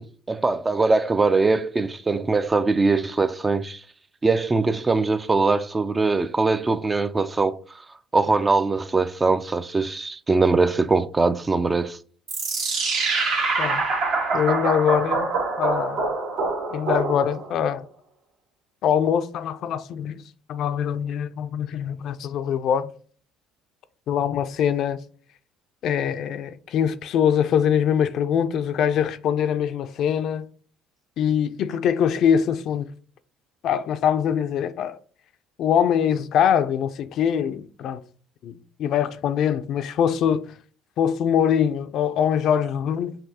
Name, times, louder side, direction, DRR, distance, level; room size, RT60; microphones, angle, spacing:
voice 1, 0.0-3.8 4.2-7.6 8.1-12.0, right 3 dB, 20° right, 0.4 m, -22 dB
sound 1, 12.3-17.6, right 3 dB, 65° right, 1.5 m, -25 dB
voice 2, 14.3-15.3 15.6-16.2 16.7-17.9 18.8-20.2 20.5-22.9 24.1-25.0 25.8-30.5 31.2-32.9 33.6-35.0 35.6-38.0 38.4-40.5 41.0-43.2, left 8 dB, 60° left, 0.4 m, -23 dB
5.8 x 2.6 x 2.8 m
supercardioid pair, 85°, 0 cm